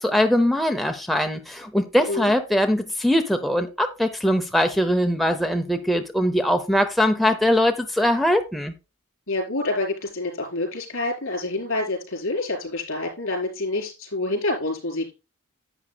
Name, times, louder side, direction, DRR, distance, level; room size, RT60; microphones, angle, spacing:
voice 1, 0.0-8.7, left 1 dB, ahead, 0.6 m, -21 dB
voice 2, 9.3-15.1, left 2 dB, 60° left, 4.6 m, -27 dB
11.0 x 8.6 x 2.2 m
head